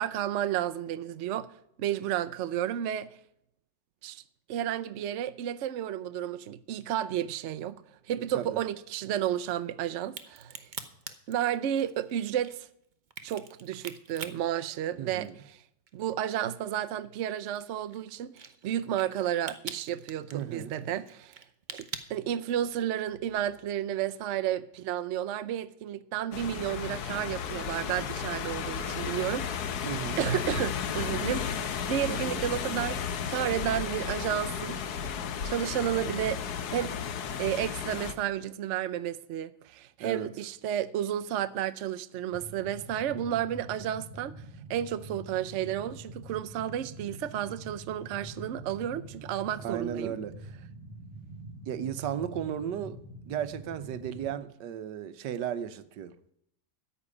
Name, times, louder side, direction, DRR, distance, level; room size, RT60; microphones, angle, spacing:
voice 1, 0.0-1.5 1.8-3.1 4.0-4.2 4.5-7.8 8.1-10.7 11.3-12.7 13.2-15.3 15.9-21.4 21.7-29.9 30.2-34.8 35.4-36.4 36.7-36.9 37.4-44.4 44.7-50.1, right 11 dB, 85° right, 0.6 m, -32 dB
Crack, 10.0-15.5 15.9-22.9, right 5 dB, 45° right, 0.6 m, -44 dB
voice 2, 15.0-15.3 20.3-20.8 29.8-30.2 32.1-32.4 40.0-40.3 49.6-50.3 51.7-53.0 53.3-56.2, right 9 dB, 65° right, 1.3 m, -35 dB
sound 1, 26.3-38.1, left 7 dB, 60° left, 1.3 m, -34 dB
sound 2, 42.3-54.3, right 1 dB, 5° right, 3.3 m, -45 dB
13.5 x 5.8 x 9.7 m
omnidirectional pair, 2.1 m